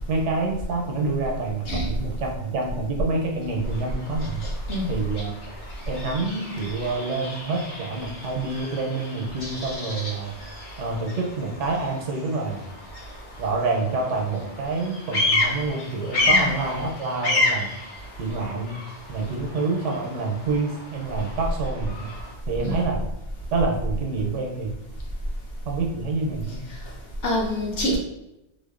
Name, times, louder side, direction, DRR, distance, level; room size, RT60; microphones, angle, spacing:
voice 1, 0.1-4.5 4.9-5.3 5.9-10.3 10.8-12.6 13.4-17.8 18.2-18.7 19.1-22.1 22.5-23.1 23.5-24.8 25.7-26.7, right 3 dB, 85° right, 0 dB, 0.9 m, -27 dB
Bird vocalization bird call bird song, 3.6-22.3, left 2 dB, 80° left, 1.1 m, -31 dB
voice 2, 27.2-28.0, left 1 dB, 60° left, -3 dB, 0.8 m, -26 dB
2.5 x 2.0 x 2.3 m, 0.90 s
omnidirectional pair, 1.2 m